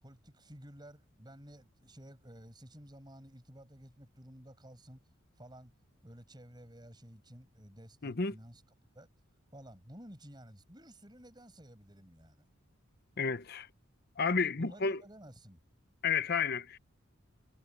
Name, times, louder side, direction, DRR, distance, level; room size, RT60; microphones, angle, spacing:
voice 1, 0.0-5.1 5.4-5.7 6.0-8.6 9.0-9.1 9.5-12.5 14.6-15.6, equal, 20° right, 6.9 m, -53 dB
voice 2, 8.0-8.3 13.2-13.7 14.2-15.0 16.0-16.8, left 5 dB, 50° left, 0.9 m, -31 dB
head